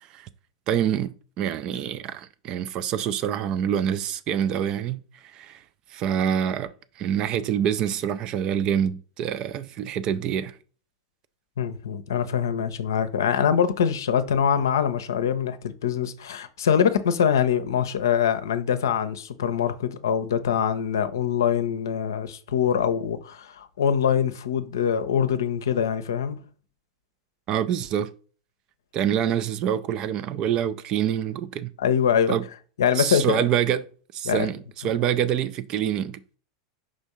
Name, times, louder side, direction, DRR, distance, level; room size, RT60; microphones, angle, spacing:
voice 1, 0.7-5.6 5.9-10.6 27.5-28.1 28.9-31.7 32.3-32.4 32.9-33.8 34.1-36.2, right 9 dB, 35° right, 0.4 m, -26 dB
voice 2, 11.6-26.4 31.8-32.3 32.8-33.4 34.3-34.5, left 8 dB, 65° left, 0.6 m, -24 dB
5.1 x 3.5 x 5.4 m
figure-of-eight pair, 90°, 2 cm